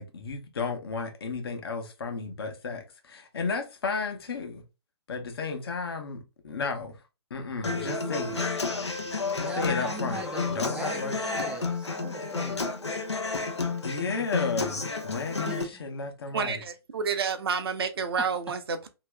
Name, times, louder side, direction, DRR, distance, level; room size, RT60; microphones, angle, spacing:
voice 1, 0.0-4.6 5.1-7.0 7.3-8.4 9.3-11.3 13.8-16.6, left 4 dB, 60° left, 1.0 m, -33 dB
Human voice / Acoustic guitar, 7.6-15.6, left 4 dB, 80° left, 0.7 m, -31 dB
voice 2, 9.4-12.7 15.5-15.7, right 3 dB, 5° right, 0.4 m, -39 dB
voice 3, 16.3-18.9, right 5 dB, 60° right, 0.7 m, -29 dB
2.9 x 2.9 x 3.4 m
figure-of-eight pair, 125°, 14 cm